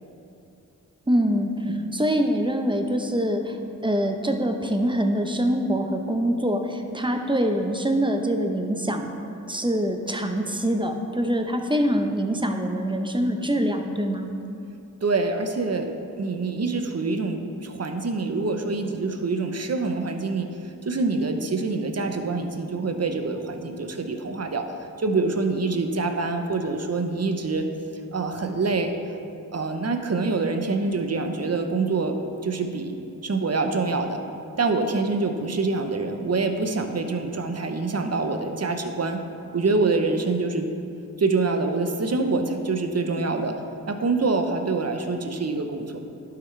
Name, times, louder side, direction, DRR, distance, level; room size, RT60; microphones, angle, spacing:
voice 1, 1.1-9.1 9.5-14.3, equal, 15° right, 4 dB, 0.8 m, -24 dB
voice 2, 15.0-20.5 20.8-27.7 28.1-28.9 29.5-33.0 33.2-34.2 34.6-39.2 39.5-40.7 41.2-43.6 43.9-46.0, right 3 dB, 50° right, 6 dB, 0.8 m, -25 dB
11.5 x 5.9 x 3.3 m, 2.6 s
cardioid pair, 45°, 33 cm